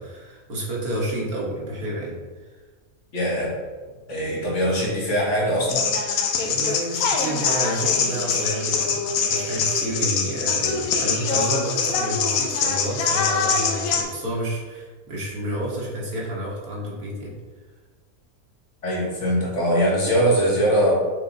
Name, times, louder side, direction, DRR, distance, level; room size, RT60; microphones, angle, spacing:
voice 1, 0.0-2.1 4.3-4.4 6.4-17.3, right 1 dB, 90° right, -5 dB, 2.1 m, -30 dB
voice 2, 3.1-3.5 4.1-5.9 18.8-20.9, equal, 55° left, -4 dB, 1.8 m, -22 dB
sound 1, 5.7-14.0, left 5 dB, 80° left, 1.2 m, -23 dB
6.0 x 3.9 x 4.1 m, 1.4 s
omnidirectional pair, 1.5 m